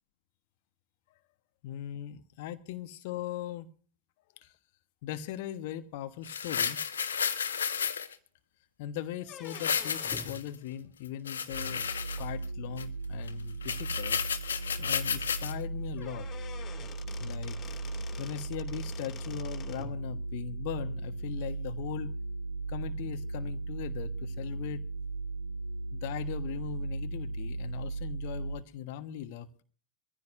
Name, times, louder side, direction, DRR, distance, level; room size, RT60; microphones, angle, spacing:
voice 1, 1.6-3.7 4.4-4.5 5.0-6.8 8.8-11.8 12.2-14.2 14.8-16.3 17.2-17.6 18.2-22.1 22.7-24.8 25.9-29.6, left 11 dB, 50° left, 9 dB, 1.3 m, -39 dB
sound 1, 6.2-8.1 9.4-10.5 11.0-12.4 12.8-12.9 13.3-13.4 13.6-15.5 16.0-16.1, left 7 dB, 70° left, 1.4 m, -32 dB
sound 2, 9.2-10.4 12.2-12.3 13.2-13.3 13.7-13.8 14.1-14.2 15.6-15.7 16.0-19.9, left 6 dB, 25° left, 2.7 m, -47 dB
sound 3, 11.5-28.6, right 3 dB, 75° right, 7.8 m, -37 dB
23.5 x 15.0 x 2.6 m, 0.42 s
figure-of-eight pair, 90°, 0 cm